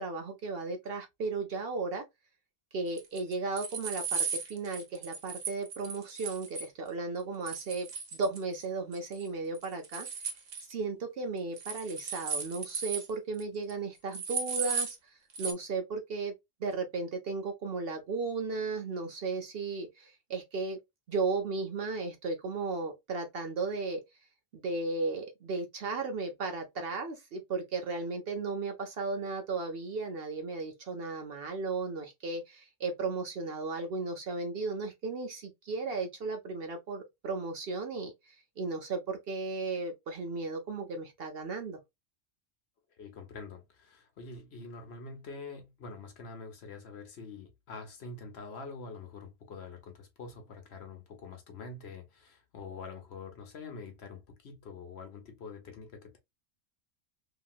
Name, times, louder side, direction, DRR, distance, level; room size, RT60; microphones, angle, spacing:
voice 1, 0.0-2.0 2.7-10.1 10.7-15.0 15.4-16.3 16.6-20.8 21.1-24.0 24.5-41.8, right 3 dB, 60° right, 0.8 m, -35 dB
sound 1, 3.0-6.7 7.5-8.6 8.9-9.3 9.5-10.6 11.6-13.1 13.4-13.5 13.7-13.8 14.1-15.0 15.3-15.5, right 5 dB, 75° right, 1.1 m, -36 dB
voice 2, 43.0-56.2, left 4 dB, 60° left, 1.0 m, -45 dB
2.8 x 2.8 x 2.3 m
omnidirectional pair, 1.3 m